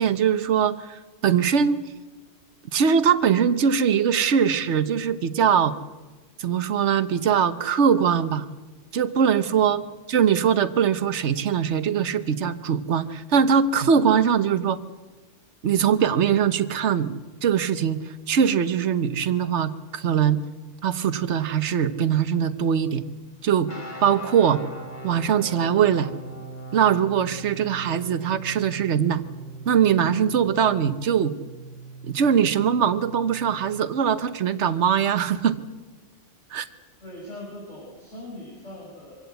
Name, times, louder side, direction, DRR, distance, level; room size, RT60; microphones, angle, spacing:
voice 1, 0.0-1.9 2.7-5.7 6.4-8.5 8.9-14.8 15.6-18.0 18.3-20.4 20.8-23.0 23.4-23.7 24.0-24.6 25.0-26.1 26.7-29.2 29.7-31.3 32.0-35.6 36.5-36.6, right 7 dB, 70° right, 12 dB, 1.3 m, -22 dB
sound 1, 23.7-33.9, right 2 dB, 40° left, 2.9 m, -40 dB
voice 2, 37.0-39.2, left 1 dB, 80° left, -5 dB, 7.2 m, -40 dB
24.5 x 16.5 x 8.1 m, 1.2 s
omnidirectional pair, 1.2 m